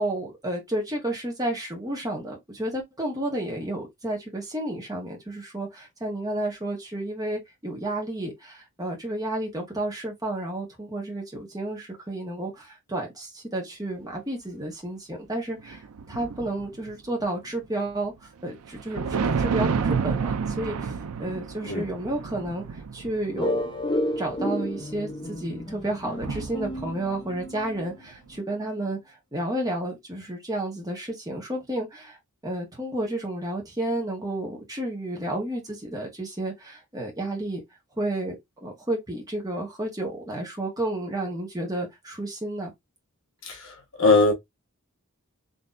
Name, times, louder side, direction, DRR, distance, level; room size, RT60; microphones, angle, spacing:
voice 1, 0.0-15.8 16.1-18.1 18.4-20.9 21.2-23.6 24.2-32.2 32.4-37.6 38.0-38.4 38.6-42.7, right 1 dB, 15° right, 1.4 m, -31 dB
sound 1, 15.6-16.9 18.5-27.7, right 5 dB, 80° right, 0.5 m, -30 dB
sound 2, 23.4-27.9, left 1 dB, 20° left, 0.8 m, -31 dB
voice 2, 44.0-44.3, left 3 dB, 60° left, 1.2 m, -20 dB
4.0 x 3.3 x 2.5 m
head